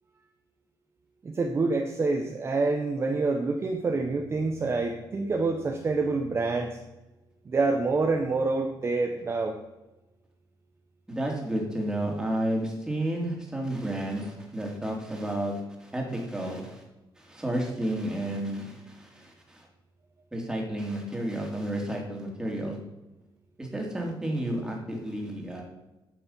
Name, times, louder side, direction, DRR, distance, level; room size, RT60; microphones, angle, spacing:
voice 1, 1.2-6.8 7.5-9.5, right 3 dB, 30° right, 3 dB, 0.9 m, -27 dB
voice 2, 11.1-16.8 17.2-19.7 20.3-22.8 23.6-25.6, right 1 dB, 10° right, 0 dB, 2.5 m, -31 dB
10.5 x 6.8 x 5.5 m, 1.0 s
cardioid pair, 145°, 8 cm